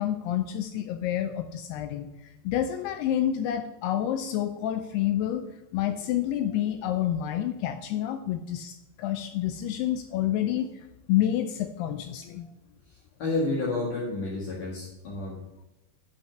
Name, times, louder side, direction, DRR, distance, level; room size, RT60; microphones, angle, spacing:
voice 1, 0.0-2.1 2.5-5.5 5.7-10.7 11.1-12.5, left 11 dB, 80° left, 7 dB, 2.4 m, -28 dB
voice 2, 13.2-15.4, left 2 dB, 60° left, -4 dB, 2.6 m, -30 dB
8.9 x 5.5 x 7.3 m, 0.96 s
omnidirectional pair, 5.0 m